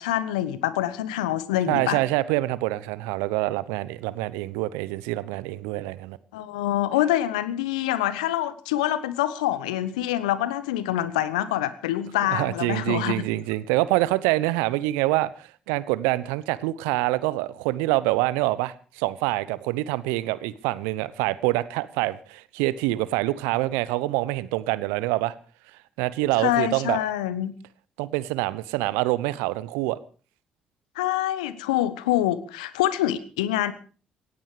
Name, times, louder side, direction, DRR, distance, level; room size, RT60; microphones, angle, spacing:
voice 1, 0.0-2.0 6.3-13.1 26.4-27.5 30.9-33.7, left 13 dB, 80° left, 1.2 m, -25 dB
voice 2, 1.7-6.2 12.3-25.3 26.0-27.0 28.0-30.0, right 18 dB, 75° right, 0.9 m, -26 dB
18.0 x 16.0 x 5.0 m
hypercardioid pair, 45°, 4 cm